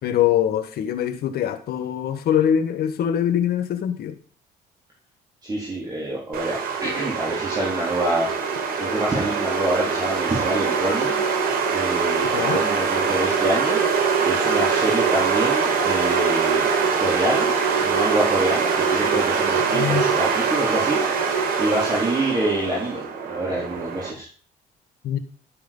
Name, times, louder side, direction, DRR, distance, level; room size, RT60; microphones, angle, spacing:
voice 1, 0.0-4.1 12.3-12.6 19.7-20.1 25.0-25.2, left 9 dB, 65° left, 10 dB, 1.5 m, -23 dB
voice 2, 5.4-8.3 8.8-11.2 11.7-13.8 14.2-16.7 17.0-17.5 17.8-21.3 21.6-23.0 23.3-24.3, right 1 dB, 25° right, -5 dB, 4.0 m, -26 dB
sound 1, 6.3-24.1, right 5 dB, 60° right, 5.2 m, -23 dB
12.0 x 7.7 x 5.4 m, 0.43 s
cardioid pair, 110°, 17 cm